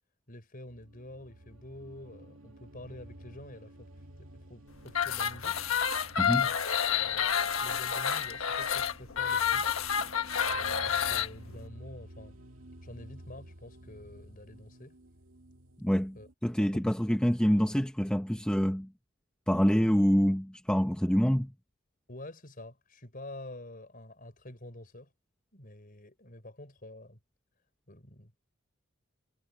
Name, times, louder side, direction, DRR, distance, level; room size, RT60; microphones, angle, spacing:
voice 1, 0.3-3.9 4.2-5.6 6.4-9.8 10.5-12.4 12.8-15.0 16.1-16.3 16.6-16.9 22.1-25.1 25.5-27.2 27.9-28.3, left 1 dB, 40° left, 5.6 m, -48 dB
sound 1, 0.7-16.3, right 1 dB, 70° right, 2.6 m, -52 dB
sound 2, 4.9-11.3, left 7 dB, 75° left, 1.4 m, -29 dB
voice 2, 6.2-6.5 15.8-16.2 16.4-18.9 19.5-21.5, equal, 5° left, 1.1 m, -26 dB
head